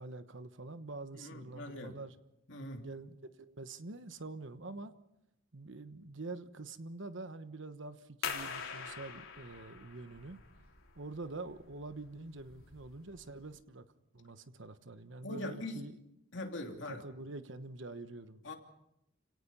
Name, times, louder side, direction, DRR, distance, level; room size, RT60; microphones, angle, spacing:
voice 1, 0.0-2.1 2.8-4.9 5.5-10.4 10.9-13.9 14.1-15.9 16.7-18.4, right 2 dB, 65° right, 11 dB, 1.2 m, -46 dB
voice 2, 1.1-2.0 2.5-2.9 15.2-15.8 16.3-17.0 18.4-18.5, left 2 dB, 60° left, 3 dB, 2.9 m, -42 dB
sound 1, 8.2-13.6, left 6 dB, 90° left, 3.4 m, -45 dB
29.5 x 17.5 x 5.5 m, 0.85 s
head